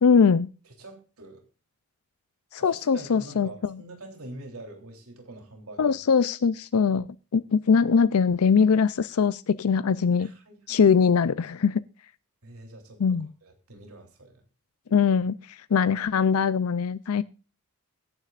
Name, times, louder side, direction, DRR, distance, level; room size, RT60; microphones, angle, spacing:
voice 1, 0.0-0.5 2.5-3.7 5.8-7.1 7.3-10.3 10.7-11.8 13.0-13.3 14.9-17.2, left 6 dB, 85° left, 0.5 m, -22 dB
voice 2, 0.6-1.4 2.6-6.0 10.2-10.8 12.4-14.4, right 2 dB, 90° right, 3.3 m, -45 dB
23.0 x 9.8 x 2.5 m
head